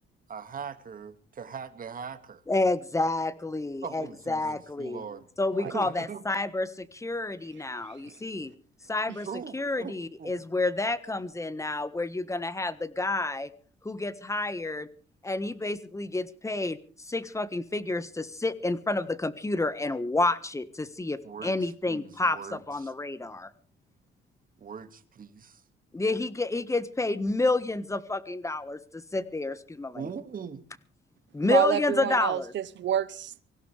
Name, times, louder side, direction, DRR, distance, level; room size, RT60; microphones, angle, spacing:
voice 1, 0.3-2.4 3.8-5.3 5.7-6.2 9.3-9.9 10.2-10.4 21.2-22.9 24.6-25.6 29.9-30.6, right 6 dB, 45° right, 2.0 m, -40 dB
voice 2, 2.5-5.0 5.4-8.5 8.9-9.3 9.5-13.5 13.8-14.9 15.2-23.5 25.9-30.1 31.3-32.5, left 2 dB, 15° left, 1.4 m, -29 dB
voice 3, 31.4-33.4, right 11 dB, 65° right, 1.0 m, -28 dB
24.0 x 16.5 x 3.4 m
cardioid pair, 90°, 20 cm